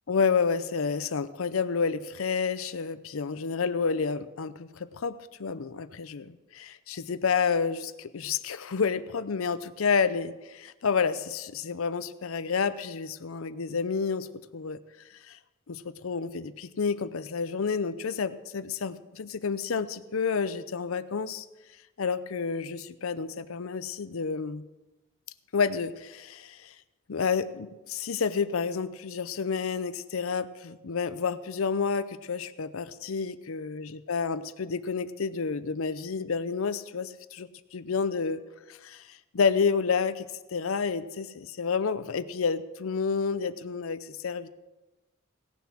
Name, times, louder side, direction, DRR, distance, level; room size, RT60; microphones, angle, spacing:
voice 1, 0.1-14.8 15.3-15.4 15.7-21.5 22.0-24.6 25.5-26.7 27.1-38.4 38.7-44.5, left 5 dB, 85° left, 14 dB, 0.6 m, -30 dB
17.5 x 6.9 x 6.2 m, 1.1 s
head